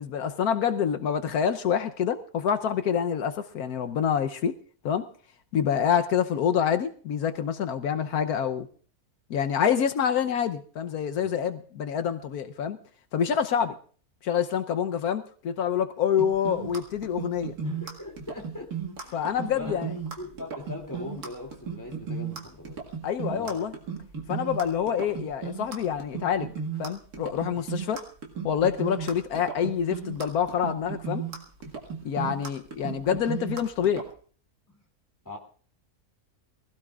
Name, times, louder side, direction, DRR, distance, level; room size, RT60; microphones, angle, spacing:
voice 1, 0.0-4.5 4.8-5.1 5.5-8.7 9.3-12.8 13.1-13.7 14.2-17.5 19.1-19.9 23.0-23.7 24.3-26.5 26.8-28.0 28.4-31.2 32.0-34.0, left 8 dB, 80° left, 8 dB, 1.3 m, -27 dB
sound 1, 16.2-34.1, right 6 dB, 90° right, 2.5 m, -35 dB
voice 2, 17.6-18.7 19.0-19.8 20.2-22.8 23.3-23.6 27.6-27.7 34.7-34.8 35.2-35.4, left 2 dB, 10° left, 0 dB, 2.6 m, -40 dB
23.5 x 16.0 x 2.4 m, 0.43 s
omnidirectional pair, 1.6 m